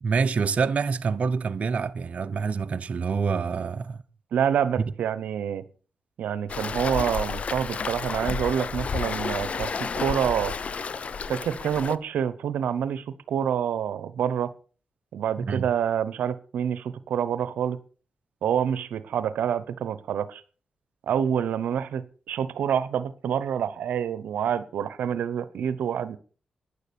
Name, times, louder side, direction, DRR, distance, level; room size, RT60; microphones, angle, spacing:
voice 1, 0.0-4.0 15.4-15.7, right 5 dB, 55° right, 0.8 m, -26 dB
voice 2, 4.3-5.6 6.2-10.5 11.3-14.5 15.1-17.8 18.4-20.4 21.1-26.2, right 8 dB, 85° right, 0.9 m, -27 dB
Waves surf, 6.5-12.0, left 5 dB, 55° left, 0.7 m, -31 dB
11.5 x 10.0 x 6.9 m
cardioid pair, 70°, 3 cm